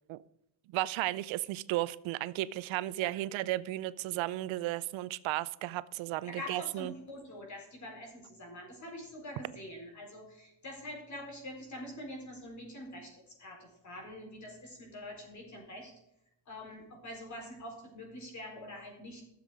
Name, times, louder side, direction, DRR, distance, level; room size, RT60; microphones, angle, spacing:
voice 1, 0.7-6.9, right 16 dB, 85° right, 0.7 m, -34 dB
voice 2, 6.2-15.9 16.5-19.2, left 1 dB, 40° left, 4.5 m, -45 dB
12.5 x 7.4 x 4.9 m
cardioid pair, 130°, 46 cm